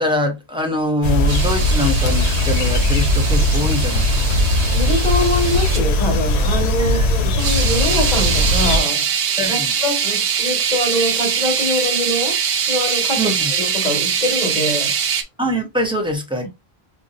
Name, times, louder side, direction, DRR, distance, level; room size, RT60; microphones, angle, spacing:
voice 1, 0.0-4.3 6.8-7.1 9.4-9.7 13.2-13.5 15.4-16.5, left 1 dB, 5° right, 0.5 m, -23 dB
sound 1, 1.0-8.8, left 1 dB, 85° left, 0.9 m, -18 dB
sound 2, 1.3-5.8 7.4-15.2, right 7 dB, 70° right, 0.7 m, -22 dB
voice 2, 4.7-9.1 9.5-12.4 12.7-14.9, left 1 dB, 40° left, 1.8 m, -23 dB
5.2 x 2.0 x 2.5 m
omnidirectional pair, 1.1 m